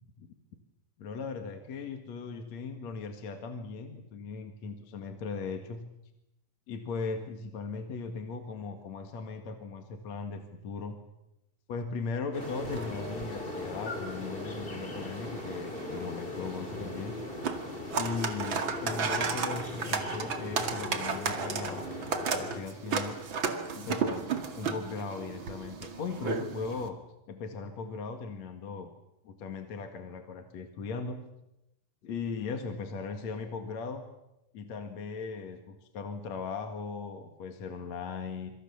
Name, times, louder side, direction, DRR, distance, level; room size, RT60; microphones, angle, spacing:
voice 1, 1.0-5.8 6.7-11.0 11.7-17.2 17.9-21.8 22.3-23.2 23.7-24.3 24.6-27.0 27.3-28.9 29.2-31.2 32.0-34.0 34.5-38.5, left 4 dB, 50° left, 6 dB, 2.7 m, -38 dB
sound 1, 12.3-22.6, left 2 dB, 15° left, 2.1 m, -39 dB
sound 2, 12.4-26.9, right 5 dB, 40° right, 2.1 m, -35 dB
27.0 x 25.5 x 7.2 m, 0.89 s
omnidirectional pair, 4.7 m